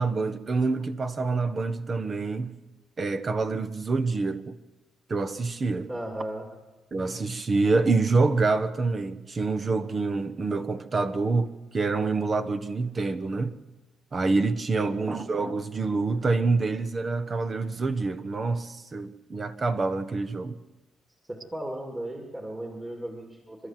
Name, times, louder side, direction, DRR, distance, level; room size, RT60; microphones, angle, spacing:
voice 1, 0.0-2.6 3.0-4.5 5.1-5.9 6.9-13.5 14.1-20.6, right 3 dB, 35° right, 1.2 m, -26 dB
voice 2, 5.9-6.5 14.8-15.2 21.3-23.7, right 1 dB, 20° right, 3.0 m, -36 dB
28.5 x 12.0 x 7.7 m
cardioid pair, 90°, 0 cm